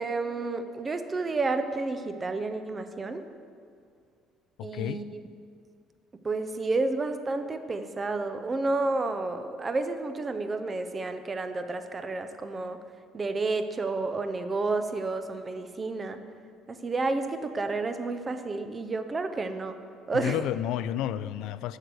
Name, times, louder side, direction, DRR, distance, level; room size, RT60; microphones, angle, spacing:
voice 1, 0.0-3.2 4.6-5.2 6.2-12.8 13.1-16.2 16.7-19.8 20.1-20.4, right 3 dB, 20° right, 9 dB, 0.5 m, -30 dB
voice 2, 4.6-5.1 20.1-21.8, left 11 dB, 75° left, 15 dB, 0.3 m, -31 dB
7.9 x 6.5 x 7.6 m, 2.2 s
cardioid pair, 165°, 0 cm